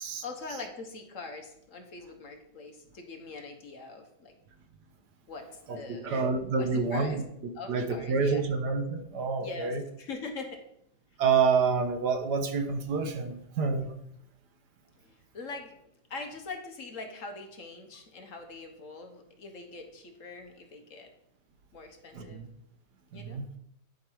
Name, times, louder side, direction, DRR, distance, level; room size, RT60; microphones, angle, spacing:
voice 1, 0.0-4.3 5.3-5.5 5.7-6.3 6.6-7.2 7.5-8.4 9.4-10.6 15.0-15.7 16.1-21.1 21.7-22.4 23.1-23.6, left 3 dB, 55° left, 4 dB, 1.4 m, -42 dB
voice 2, 5.7-7.1 7.7-9.8 11.2-13.9 22.1-22.5 23.1-23.4, right 5 dB, 75° right, 6 dB, 1.6 m, -28 dB
11.0 x 5.3 x 4.5 m, 0.75 s
omnidirectional pair, 1.8 m